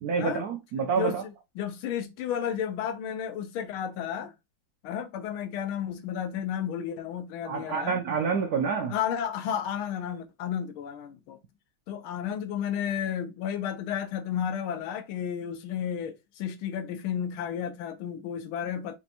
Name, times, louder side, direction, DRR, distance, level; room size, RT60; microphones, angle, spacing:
voice 1, 0.0-1.2 7.5-8.9, right 5 dB, 85° right, 0.8 m, -28 dB
voice 2, 0.9-4.3 4.8-8.0 8.7-11.4 11.9-19.0, left 9 dB, 80° left, 1.5 m, -32 dB
5.6 x 2.5 x 2.8 m
omnidirectional pair, 2.3 m